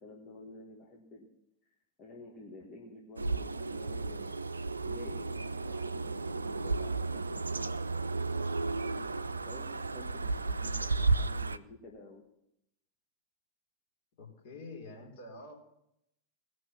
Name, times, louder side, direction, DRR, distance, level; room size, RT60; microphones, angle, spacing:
voice 1, 0.0-1.3 2.0-7.8 8.8-12.2, left 2 dB, 30° left, -2 dB, 1.8 m, -51 dB
sound 1, 3.2-11.6, right 3 dB, 80° right, 0.4 m, -33 dB
voice 2, 14.2-15.5, left 2 dB, 50° left, 0 dB, 4.0 m, -47 dB
18.5 x 6.3 x 6.1 m, 0.79 s
figure-of-eight pair, 90°, 0 cm